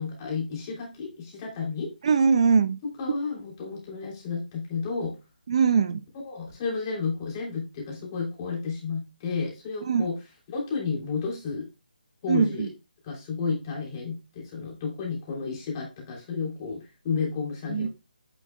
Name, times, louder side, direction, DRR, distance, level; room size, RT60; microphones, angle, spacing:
voice 1, 0.0-1.9 3.0-5.2 6.2-10.1 10.5-11.7 12.2-12.7 13.0-17.9, left 5 dB, 25° left, 3.1 m, -32 dB
voice 2, 2.0-2.8 5.5-6.0 9.9-10.0 12.3-12.7 17.7-17.9, right 6 dB, 40° right, 0.5 m, -21 dB
9.1 x 6.0 x 2.2 m
hypercardioid pair, 165°, 5 cm